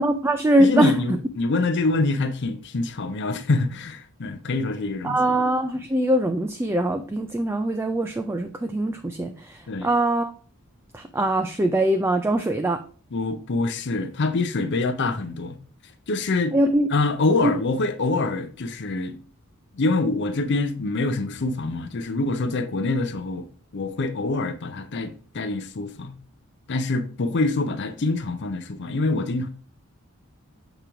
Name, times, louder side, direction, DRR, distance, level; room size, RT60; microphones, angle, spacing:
voice 1, 0.0-1.0 5.0-10.3 10.9-12.8 16.5-16.9 17.4-17.5, right 1 dB, 10° right, 0.3 m, -22 dB
voice 2, 0.6-5.2 9.7-9.9 13.1-15.6 16.1-16.6 16.9-19.2 19.7-23.5 23.7-26.2 26.7-29.5, left 3 dB, 55° left, 0.6 m, -25 dB
6.6 x 3.0 x 4.7 m
head